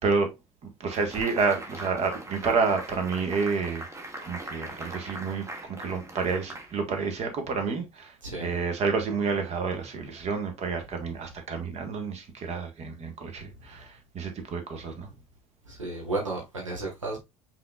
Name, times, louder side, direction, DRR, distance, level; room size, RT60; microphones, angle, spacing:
voice 1, 0.8-3.8 4.3-8.1 8.4-15.1, right 4 dB, 40° right, 1.5 m, -29 dB
sound 1, 0.9-7.4, right 1 dB, 20° right, 1.2 m, -41 dB
voice 2, 8.2-8.5 10.9-11.1 14.9-15.0 15.6-17.2, right 2 dB, 85° right, 1.6 m, -33 dB
5.6 x 3.8 x 2.4 m
figure-of-eight pair, 65°, 16 cm